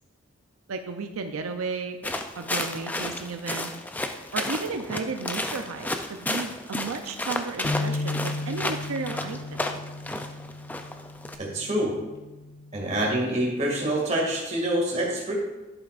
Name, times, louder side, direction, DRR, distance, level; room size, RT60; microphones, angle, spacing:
voice 1, 0.7-2.0 2.3-3.7 4.3-9.4, right 4 dB, 90° right, 6 dB, 0.5 m, -33 dB
sound 1, 2.0-11.4, left 2 dB, 10° left, 0.4 m, -32 dB
sound 2, 7.6-13.9, left 2 dB, 55° left, 0.7 m, -35 dB
voice 2, 11.4-12.0 12.7-15.3, right 1 dB, 30° right, -2 dB, 2.1 m, -26 dB
11.0 x 8.7 x 2.5 m, 1.1 s
head